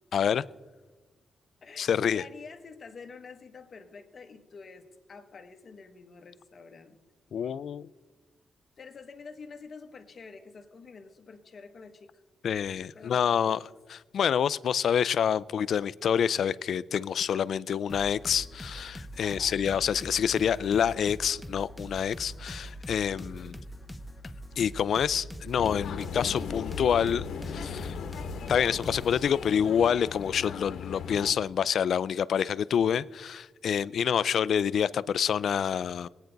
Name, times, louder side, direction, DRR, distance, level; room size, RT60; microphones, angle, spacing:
voice 1, 0.1-0.4 1.8-2.2 7.3-7.9 12.4-13.6 13.9-23.5 24.6-27.9 28.5-36.1, left 8 dB, 55° left, 18 dB, 0.3 m, -27 dB
voice 2, 1.6-7.0 8.8-12.2 12.9-13.6 19.2-19.6 23.3-23.6, left 4 dB, 35° left, 6 dB, 1.1 m, -48 dB
sound 1, 17.9-29.2, equal, 5° left, 0.7 m, -43 dB
sound 2, 25.6-31.3, left 6 dB, 75° left, 1.0 m, -37 dB
21.5 x 9.0 x 3.9 m, 1.3 s
wide cardioid pair, 175°, 0 cm